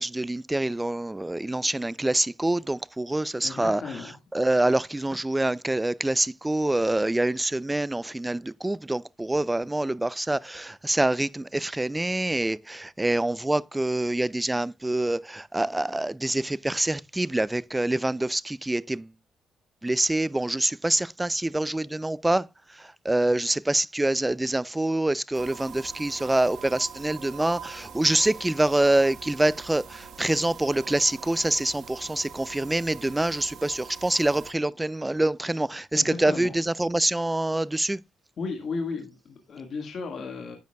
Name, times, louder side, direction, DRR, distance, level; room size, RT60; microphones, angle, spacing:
voice 1, 0.0-3.8 4.3-19.1 19.8-22.5 23.1-38.0, right 1 dB, 10° right, 0.4 m, -26 dB
voice 2, 3.4-4.2 35.9-36.6 38.4-40.6, left 4 dB, 55° left, 1.7 m, -34 dB
sound 1, 25.3-34.5, right 7 dB, 70° right, 1.6 m, -44 dB
10.5 x 9.1 x 2.2 m
cardioid pair, 90°, 0 cm